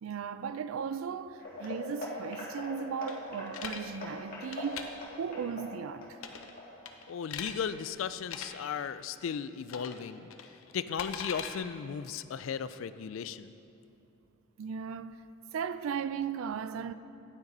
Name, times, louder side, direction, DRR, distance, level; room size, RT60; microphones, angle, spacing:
voice 1, 0.0-4.9 5.2-6.2 14.6-15.2 15.5-16.9, right 6 dB, 80° right, 0.3 m, -36 dB
sound 1, 1.4-8.0 8.3-8.6 9.0-9.1 9.6-9.7, left 2 dB, 45° left, 1.7 m, -43 dB
sound 2, 3.1-3.8 4.4-4.8 6.2-6.5 6.8-7.5 8.2-8.5 9.7-10.0 10.3-11.5, left 7 dB, 90° left, 0.7 m, -40 dB
voice 2, 7.1-10.3 10.7-13.5, left 7 dB, 70° left, 0.3 m, -36 dB
9.9 x 9.4 x 4.0 m
head